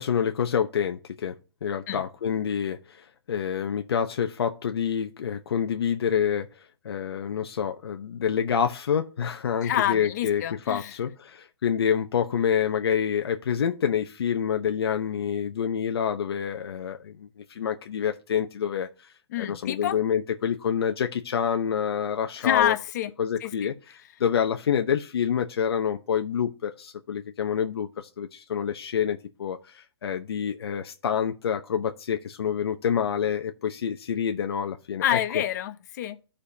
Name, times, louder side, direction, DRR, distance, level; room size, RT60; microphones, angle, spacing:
voice 1, 0.0-1.3 1.6-6.5 6.8-18.9 19.4-22.7 23.2-23.7 24.2-35.2, left 8 dB, 70° left, 0.8 m, -27 dB
voice 2, 9.6-10.9 19.3-20.0 22.4-23.1 23.4-23.7 35.0-36.2, left 11 dB, 45° left, 0.9 m, -27 dB
14.0 x 5.0 x 2.8 m
hypercardioid pair, 155°, 13 cm